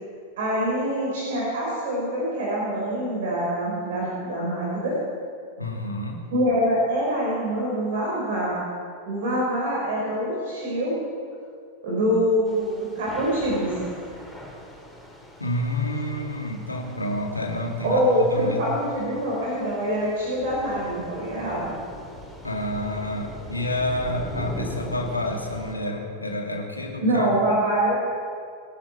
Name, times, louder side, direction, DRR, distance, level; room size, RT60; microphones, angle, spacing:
voice 1, 0.4-4.9 6.3-8.6 9.1-10.9 11.8-13.7 17.8-21.7 27.0-27.9, equal, 55° right, -5 dB, 4.8 m, -24 dB
voice 2, 5.6-6.3 15.4-18.7 22.4-27.3, left 1 dB, 80° left, 1 dB, 2.5 m, -29 dB
Thunder / Rain, 12.5-25.7, left 1 dB, 5° left, 4.2 m, -40 dB
25.0 x 11.0 x 4.5 m, 2.3 s
figure-of-eight pair, 90°, 0 cm